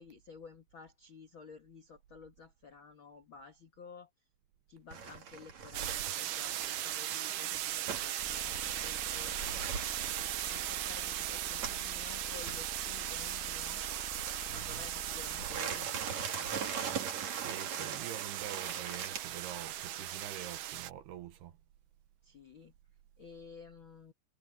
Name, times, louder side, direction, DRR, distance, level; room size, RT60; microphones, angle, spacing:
voice 1, 0.0-4.1 4.7-9.4 10.5-13.8 14.5-16.7 22.2-22.7 23.2-24.1, left 5 dB, 60° left, 1.2 m, -53 dB
sound 1, 4.9-11.9 12.3-12.6 14.1-14.8 15.3-19.2, right 6 dB, 45° right, 3.3 m, -42 dB
sound 2, 5.7-20.9, right 13 dB, 90° right, 1.8 m, -38 dB
sound 3, 8.2-15.6, left 3 dB, 40° left, 1.3 m, -49 dB
voice 2, 14.5-14.8 17.2-21.6, right 11 dB, 70° right, 2.9 m, -46 dB
omnidirectional pair, 5.1 m